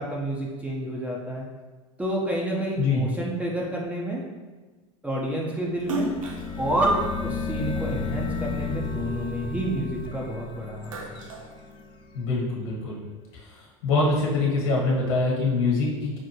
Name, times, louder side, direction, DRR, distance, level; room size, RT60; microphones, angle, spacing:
voice 1, 0.0-1.4 2.0-4.2 5.0-6.1 6.6-11.2, right 1 dB, 10° right, -3 dB, 0.7 m, -29 dB
sound 1, 5.7-12.5, left 5 dB, 30° left, 0.5 m, -33 dB
Splash splatter, 5.8-8.3 8.8-10.3 10.6-12.3, right 1 dB, 75° right, 0.8 m, -35 dB
voice 2, 12.1-13.0 13.8-16.2, left 3 dB, 60° left, -3 dB, 1.4 m, -24 dB
5.2 x 2.5 x 2.9 m, 1.3 s
figure-of-eight pair, 85°, 17 cm